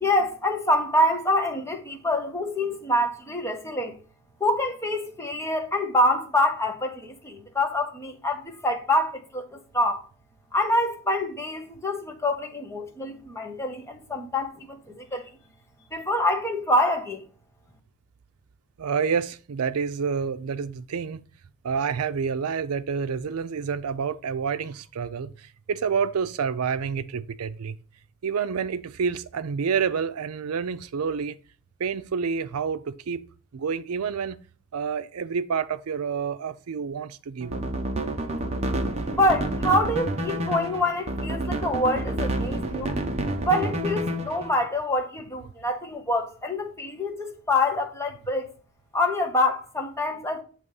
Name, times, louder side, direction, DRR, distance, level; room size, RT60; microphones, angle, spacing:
voice 1, 0.0-4.0 4.4-10.0 10.5-15.2 15.9-17.2 39.0-42.9 43.4-48.5 48.9-50.4, left 1 dB, 10° left, 1.0 m, -26 dB
voice 2, 18.8-21.2 21.6-27.8 28.2-31.4 31.8-33.3 33.5-34.4 34.7-37.6 43.3-43.4, right 6 dB, 85° right, 0.5 m, -28 dB
sound 1, 37.4-44.5, right 1 dB, 30° right, 0.8 m, -29 dB
8.1 x 3.1 x 5.3 m
head